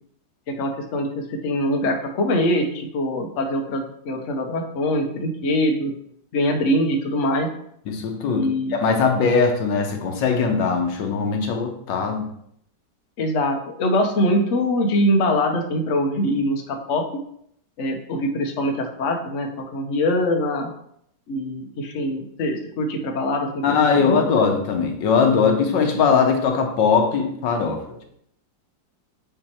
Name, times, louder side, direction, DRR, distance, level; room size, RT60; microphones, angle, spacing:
voice 1, 0.5-5.9 6.3-7.5 8.3-8.8 13.2-17.0 17.8-20.7 21.3-24.3, left 1 dB, 55° left, 3 dB, 0.9 m, -23 dB
voice 2, 7.9-12.3 23.6-27.8, left 5 dB, 80° left, 4 dB, 1.5 m, -20 dB
7.4 x 2.9 x 4.3 m, 0.71 s
omnidirectional pair, 2.0 m